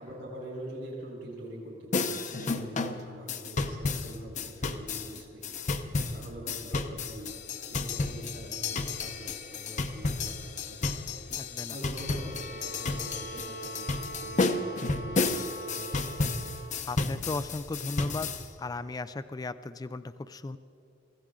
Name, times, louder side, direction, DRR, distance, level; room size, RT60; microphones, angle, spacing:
voice 1, 0.0-5.5 5.7-7.4 7.7-16.0, right 1 dB, 65° right, -2 dB, 3.9 m, -45 dB
sound 1, 1.9-18.5, left 3 dB, 40° left, 0.7 m, -32 dB
voice 2, 11.4-11.8 16.8-20.6, left 3 dB, 20° left, 13 dB, 0.3 m, -36 dB
sound 2, 12.1-16.8, right 2 dB, 90° left, 1.9 m, -43 dB
25.0 x 15.5 x 3.7 m, 2.6 s
head